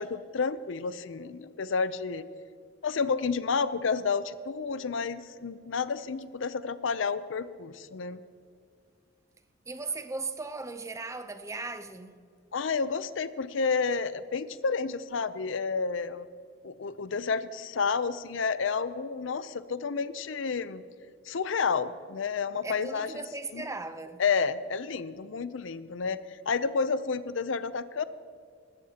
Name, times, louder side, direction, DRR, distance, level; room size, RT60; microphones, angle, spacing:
voice 1, 0.0-2.3 2.8-8.2 12.5-16.3 16.6-20.8 21.3-23.3 23.5-23.6 24.2-26.2 26.5-28.0, left 5 dB, 70° left, 0.5 m, -30 dB
voice 2, 9.7-12.2 22.6-24.2, right 3 dB, 15° right, 0.6 m, -37 dB
19.0 x 15.5 x 2.9 m
head